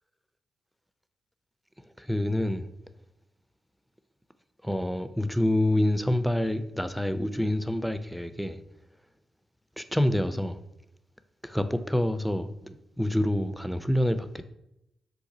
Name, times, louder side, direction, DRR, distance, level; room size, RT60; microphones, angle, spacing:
voice 1, 2.0-2.6 4.6-8.6 9.8-10.6 11.4-14.4, left 1 dB, ahead, 0.3 m, -27 dB
2.6 x 2.4 x 3.9 m
supercardioid pair, 45°, 0 cm